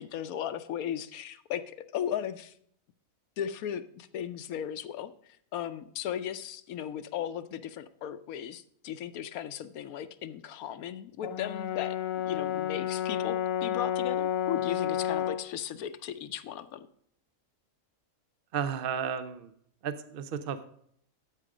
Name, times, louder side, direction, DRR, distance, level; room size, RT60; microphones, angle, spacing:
voice 1, 0.0-2.5 3.4-12.0 12.2-16.9, left 10 dB, 85° left, 11 dB, 1.1 m, -36 dB
Brass instrument, 11.2-15.5, left 10 dB, 65° left, 0.6 m, -31 dB
voice 2, 18.5-19.5 19.8-20.7, right 7 dB, 50° right, 11 dB, 0.7 m, -33 dB
13.0 x 5.1 x 4.9 m, 0.66 s
omnidirectional pair, 1.5 m